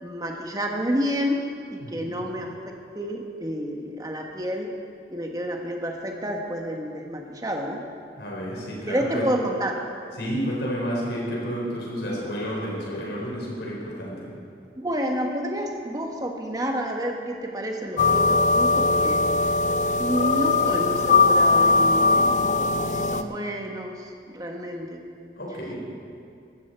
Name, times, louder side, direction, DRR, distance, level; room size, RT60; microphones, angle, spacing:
voice 1, 0.0-1.4 1.7-4.7 5.1-7.8 8.9-9.9 14.8-19.3 19.5-19.7 20.0-22.4 22.8-25.0, equal, 20° right, 2 dB, 1.2 m, -29 dB
voice 2, 1.8-2.3 8.2-9.3 10.2-14.3 25.4-25.8, equal, 70° left, -4 dB, 4.2 m, -31 dB
sound 1, 18.0-23.2, left 3 dB, 40° left, 0.5 m, -20 dB
15.0 x 13.0 x 4.5 m, 2.4 s
head